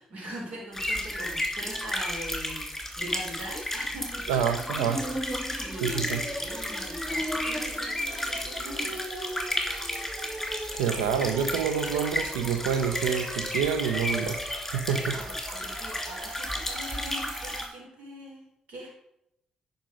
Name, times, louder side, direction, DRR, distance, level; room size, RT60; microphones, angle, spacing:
voice 1, 0.0-4.5 4.8-9.0 15.0-18.9, equal, 70° right, -2 dB, 3.8 m, -42 dB
sound 1, 0.7-17.6, left 1 dB, 10° left, 3.0 m, -33 dB
sound 2, 4.1-17.7, right 1 dB, 25° right, 1.8 m, -39 dB
voice 2, 4.3-5.0 5.8-6.2 10.8-14.4 14.7-15.1, right 7 dB, 90° right, 10 dB, 0.7 m, -27 dB
9.9 x 5.2 x 5.1 m, 0.81 s
hypercardioid pair, 45°, 3 cm